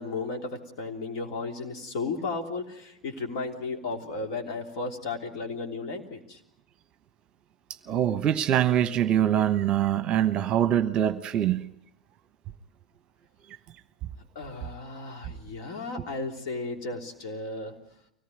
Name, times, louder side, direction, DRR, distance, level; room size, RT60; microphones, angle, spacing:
voice 1, 0.0-6.4 14.3-17.7, left 3 dB, 50° left, 3 dB, 3.3 m, -34 dB
voice 2, 7.9-11.7, right 10 dB, 30° right, 12 dB, 1.0 m, -24 dB
24.5 x 18.0 x 9.4 m, 0.80 s
figure-of-eight pair, 85°, 3 cm